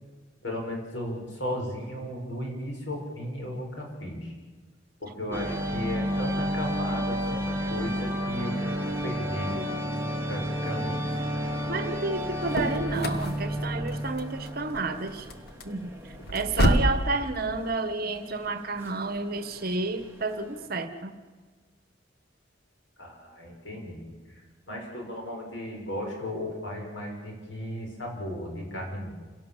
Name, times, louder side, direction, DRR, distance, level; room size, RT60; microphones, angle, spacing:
voice 1, 0.4-4.3 5.0-9.7 10.3-11.0 23.0-29.1, left 1 dB, 85° left, 0 dB, 6.7 m, -35 dB
sound 1, 5.3-20.7, equal, 15° right, 2.9 m, -32 dB
voice 2, 11.7-15.3 15.6-21.1, right 3 dB, 55° right, 9 dB, 1.5 m, -31 dB
sound 2, 12.3-17.0, equal, 55° left, 1.8 m, -29 dB
28.5 x 17.5 x 7.5 m, 1.4 s
head